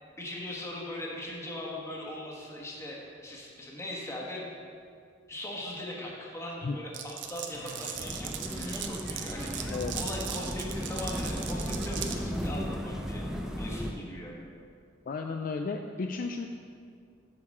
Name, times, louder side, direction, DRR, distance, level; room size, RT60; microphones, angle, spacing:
voice 1, 0.2-4.5 5.3-13.2 13.6-14.4, left 1 dB, 15° left, -3 dB, 1.2 m, -40 dB
Glass, 6.9-12.2, right 9 dB, 75° right, 0.6 m, -39 dB
sound 1, 7.2-12.6, left 1 dB, 70° left, 1.3 m, -49 dB
sound 2, 8.0-13.9, equal, 5° right, 0.5 m, -35 dB
voice 2, 15.1-16.5, left 4 dB, 50° left, 5 dB, 0.3 m, -33 dB
7.2 x 4.8 x 6.4 m, 2.2 s
head